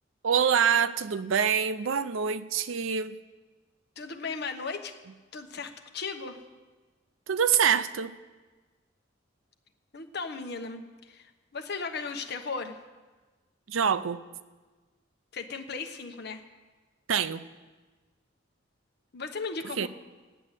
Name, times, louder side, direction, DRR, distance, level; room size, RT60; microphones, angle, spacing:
voice 1, 0.2-3.2 7.3-8.1 13.7-14.2 17.1-17.4 19.8-19.9, right 7 dB, 90° right, 0.5 m, -25 dB
voice 2, 4.0-4.9 5.3-6.4 9.9-12.8 15.3-16.4 19.1-19.9, left 4 dB, 60° left, 1.1 m, -36 dB
11.0 x 8.6 x 8.2 m
head